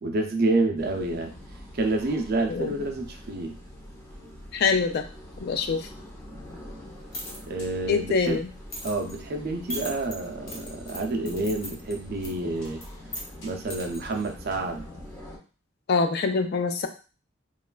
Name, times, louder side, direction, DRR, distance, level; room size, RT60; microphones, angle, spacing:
voice 1, 0.0-1.3 1.7-3.6 4.2-4.3 7.5-8.4 8.8-12.8 13.4-14.9, right 2 dB, 50° right, 3 dB, 0.4 m, -28 dB
sound 1, 0.8-15.4, left 1 dB, 15° left, 0.6 m, -44 dB
voice 2, 4.5-5.0 5.4-5.9 7.9-8.5 15.9-16.9, left 4 dB, 55° left, 7 dB, 0.3 m, -24 dB
sound 2, 6.8-14.9, equal, 80° left, 0.9 m, -42 dB
3.0 x 2.3 x 2.2 m, 0.35 s
head